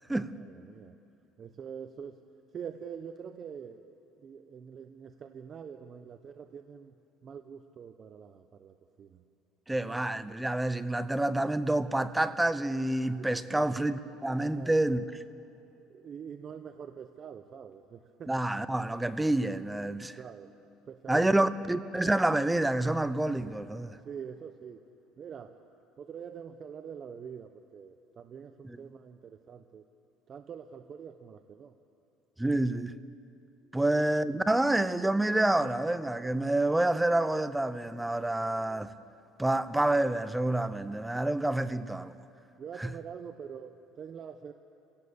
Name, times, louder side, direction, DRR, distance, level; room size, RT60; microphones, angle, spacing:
voice 1, 0.3-1.0 1.4-2.2 2.5-6.9 7.2-9.2 9.7-10.2 13.2-13.8 14.5-14.7 15.9-18.3 20.1-20.5 20.9-21.7 24.0-24.8 25.2-25.6 26.0-29.8 30.3-31.8 33.7-34.1 42.6-44.5, right 7 dB, 40° right, 0.8 m, -45 dB
voice 2, 9.7-15.0 18.3-20.2 21.1-24.0 28.7-28.8 32.4-33.0 33.7-38.9 39.4-42.1 42.8-42.9, right 1 dB, 5° right, 0.7 m, -28 dB
29.5 x 17.5 x 7.0 m
cardioid pair, 130°, 0 cm